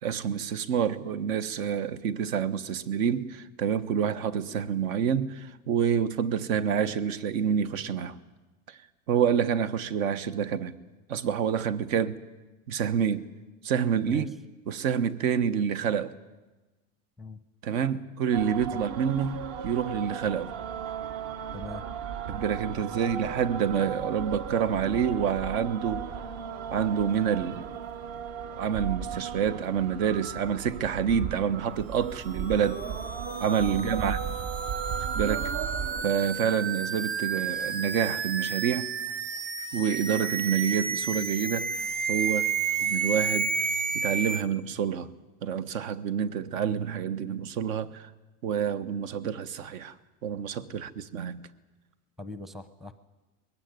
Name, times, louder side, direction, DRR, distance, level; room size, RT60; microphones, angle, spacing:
voice 1, 0.0-8.2 8.7-8.8 9.1-10.7 11.1-12.2 12.7-13.3 13.6-14.3 14.7-16.1 17.6-20.5 22.3-26.0 26.7-27.7 28.5-32.9 33.4-34.3 35.1-35.5 36.0-38.9 39.7-42.5 42.8-43.5 43.9-45.1 45.4-48.1 48.4-49.9 50.2-51.4, right 8 dB, 75° right, 1.3 m, -28 dB
sound 1, 18.3-36.0, right 7 dB, 55° right, 1.1 m, -36 dB
sound 2, 32.2-44.4, right 5 dB, 20° right, 1.0 m, -31 dB
voice 2, 33.7-34.2 42.3-42.5 52.2-52.9, left 2 dB, ahead, 0.6 m, -41 dB
21.0 x 16.0 x 9.5 m
supercardioid pair, 145°, 41 cm